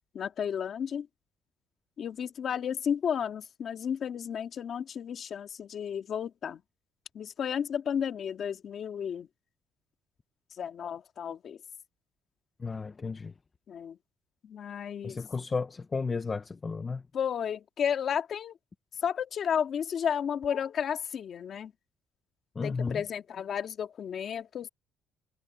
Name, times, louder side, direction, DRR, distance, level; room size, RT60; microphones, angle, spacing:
voice 1, 0.1-1.1 2.0-6.6 7.1-9.3 10.6-11.6 13.7-14.0 14.4-15.2 17.1-18.5 19.0-21.7 22.6-24.7, left 8 dB, 40° left, 2.1 m, -32 dB
voice 2, 12.6-13.3 15.0-17.0 22.6-23.0, left 4 dB, 20° left, 0.7 m, -33 dB
cardioid pair, 175°, 0 cm